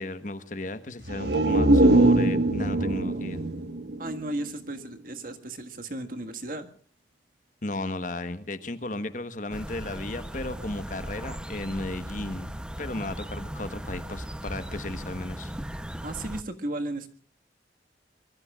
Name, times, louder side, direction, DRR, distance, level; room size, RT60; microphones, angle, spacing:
voice 1, 0.0-3.4 7.6-12.5 12.8-15.5, left 2 dB, 45° left, 11 dB, 1.3 m, -34 dB
sound 1, 1.0-4.8 5.1-5.2, right 1 dB, 65° right, 1.5 m, -22 dB
voice 2, 4.0-6.7 16.0-17.1, right 1 dB, 50° right, 6 dB, 1.8 m, -34 dB
sound 2, 9.5-16.4, equal, 5° right, 0.8 m, -37 dB
25.0 x 22.0 x 2.5 m, 0.43 s
head